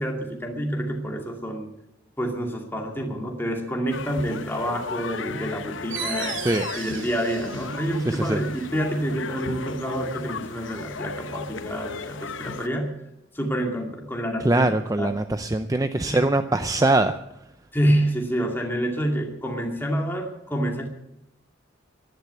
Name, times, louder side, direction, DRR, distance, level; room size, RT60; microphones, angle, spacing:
voice 1, 0.0-1.7 2.2-6.4 6.8-12.9 13.3-14.7 15.0-15.1 16.0-16.2 17.7-20.9, equal, 10° left, 1 dB, 2.4 m, -27 dB
sound 1, 3.9-12.7, left 4 dB, 70° left, 0.9 m, -35 dB
sound 2, 5.9-11.2, right 6 dB, 75° right, 2.0 m, -39 dB
voice 2, 8.1-8.4 14.4-17.2, right 2 dB, 15° right, 10 dB, 0.5 m, -22 dB
14.0 x 11.5 x 8.1 m, 0.88 s
head